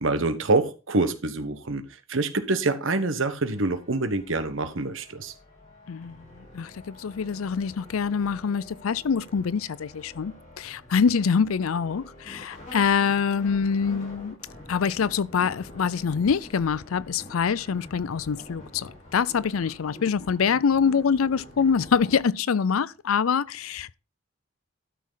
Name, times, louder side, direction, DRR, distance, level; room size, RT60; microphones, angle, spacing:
voice 1, 0.0-5.3, right 3 dB, 65° right, 1.3 m, -26 dB
sound 1, 3.2-22.2, left 1 dB, 40° left, 4.0 m, -47 dB
voice 2, 5.9-14.4 14.7-23.9, left 6 dB, 85° left, 0.5 m, -25 dB
12.5 x 6.3 x 4.0 m
head